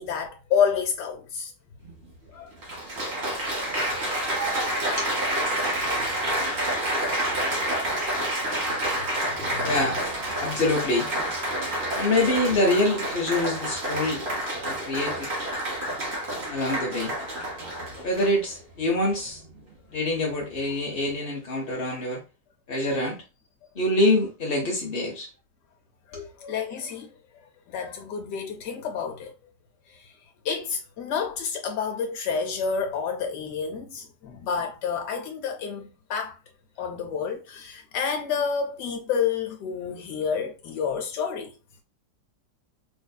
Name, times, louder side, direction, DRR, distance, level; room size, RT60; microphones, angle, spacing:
voice 1, 0.0-1.5 2.3-2.5 3.0-3.1 3.6-4.3 7.4-8.0 8.6-8.9 9.3-9.7 17.2-17.3 17.8-18.1 26.1-27.1 27.3-29.3 29.9-30.2 30.4-36.4 36.8-41.5, left 6 dB, 80° left, 1.2 m, -30 dB
Applause, 1.9-2.0 2.6-18.5 19.3-19.6, right 1 dB, 40° right, 1.4 m, -28 dB
voice 2, 9.6-10.0 10.4-11.1 12.0-14.2 14.7-15.3 16.5-17.1 18.0-19.4 19.9-22.2 22.7-23.2 23.8-25.3 26.1-26.3, left 1 dB, 55° left, 0.6 m, -25 dB
4.9 x 2.6 x 2.2 m
omnidirectional pair, 1.8 m